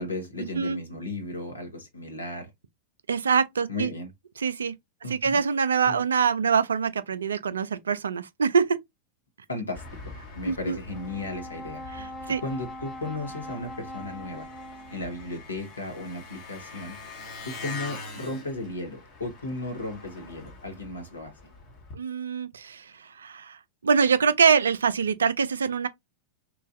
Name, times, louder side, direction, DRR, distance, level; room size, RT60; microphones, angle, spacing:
voice 1, 0.0-2.5 3.7-4.1 5.0-5.4 5.8-6.0 9.5-11.8 12.3-14.5 14.9-17.0 17.4-21.3, left 2 dB, 80° left, 1.0 m, -35 dB
voice 2, 3.1-3.9 4.4-4.7 5.1-8.8 10.4-10.8 11.9-12.4 21.9-25.9, right 6 dB, 70° right, 0.3 m, -24 dB
Engine, 9.7-21.9, left 4 dB, 40° left, 1.0 m, -44 dB
Brass instrument, 10.9-15.3, equal, ahead, 0.5 m, -41 dB
3.0 x 2.3 x 2.5 m
figure-of-eight pair, 90°, 0 cm